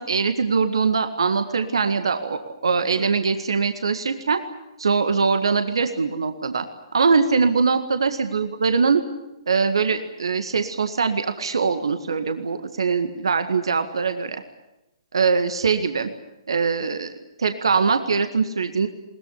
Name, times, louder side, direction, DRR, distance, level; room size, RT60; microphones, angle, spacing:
voice 1, 0.0-4.4 4.8-6.6 6.9-9.0 9.5-14.4 15.1-16.1 16.5-17.1 17.4-18.9, right 5 dB, 70° right, 8 dB, 1.8 m, -22 dB
21.5 x 20.5 x 9.9 m, 0.94 s
figure-of-eight pair, 125°, 3 cm